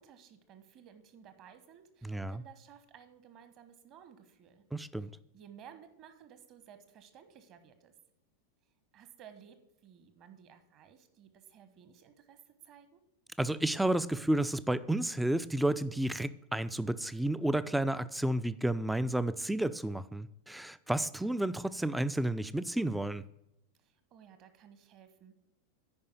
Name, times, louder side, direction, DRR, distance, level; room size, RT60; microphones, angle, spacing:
voice 1, 0.0-4.6 5.0-5.1 5.3-7.9 8.9-9.6 9.8-13.0 23.8-25.4, right 8 dB, 35° right, 1.1 m, -56 dB
voice 2, 2.0-2.4 4.7-5.1 13.4-23.2, right 1 dB, 5° right, 0.4 m, -31 dB
9.6 x 5.4 x 6.8 m
figure-of-eight pair, 90°, 0 cm